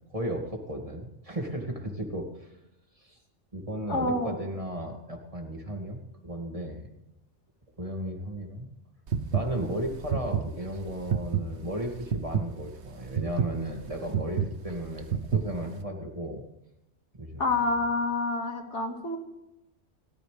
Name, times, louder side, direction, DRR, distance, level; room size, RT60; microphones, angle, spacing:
voice 1, 0.1-2.5 3.0-3.2 3.5-6.9 7.8-8.7 9.3-15.1 15.3-16.4 17.2-17.8, right 1 dB, 30° right, 2 dB, 2.4 m, -35 dB
voice 2, 3.9-4.3 17.4-19.2, left 3 dB, 80° left, 3 dB, 2.4 m, -28 dB
sound 1, 9.1-15.8, right 7 dB, 70° right, 1.2 m, -30 dB
29.5 x 13.5 x 3.4 m, 0.90 s
omnidirectional pair, 1.2 m